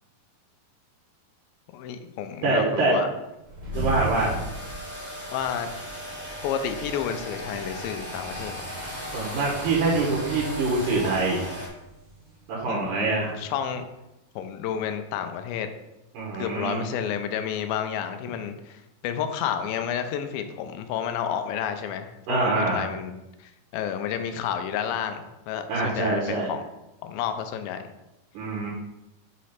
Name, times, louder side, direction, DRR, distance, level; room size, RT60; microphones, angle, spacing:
voice 1, 1.7-3.1 4.2-4.5 5.3-5.7 6.4-8.6 12.7-13.9 14.4-15.7 16.3-23.2 23.7-26.6 27.0-27.8, left 8 dB, 90° left, 8 dB, 2.4 m, -30 dB
voice 2, 2.4-3.0 3.7-4.3 9.1-11.5 12.5-13.3 16.1-16.9 22.3-22.9 25.7-26.5 28.3-28.7, right 3 dB, 70° right, -4 dB, 2.4 m, -25 dB
sound 1, 3.3-13.8, right 2 dB, 90° right, 0.6 m, -40 dB
sound 2, 3.7-11.7, equal, 10° left, 0.6 m, -37 dB
6.6 x 3.1 x 5.8 m, 0.95 s
omnidirectional pair, 4.1 m